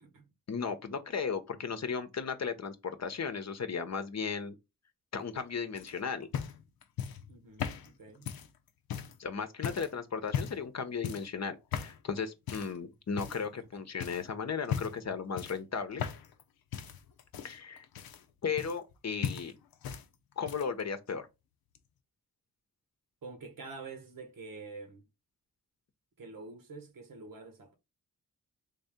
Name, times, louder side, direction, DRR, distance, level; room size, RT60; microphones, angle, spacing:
voice 1, 0.5-4.5 5.1-6.3 9.2-16.0 17.4-17.9 18.4-19.5 20.4-21.3, left 6 dB, 50° left, 0.8 m, -35 dB
sound 1, 5.7-9.2 9.6-9.9 10.3-10.7 11.0-11.3 11.7-12.0 12.5-12.8 13.2-13.7 14.0-14.2 14.6-15.1 15.4-16.4 16.7-19.0 19.2-20.0 20.3-20.8 21.7-21.8, left 8 dB, 85° left, 0.6 m, -38 dB
voice 2, 7.3-8.3 13.2-13.8 23.2-25.0 26.2-27.7, right 4 dB, 70° right, 1.2 m, -47 dB
3.5 x 2.7 x 3.5 m
cardioid pair, 55°, 35 cm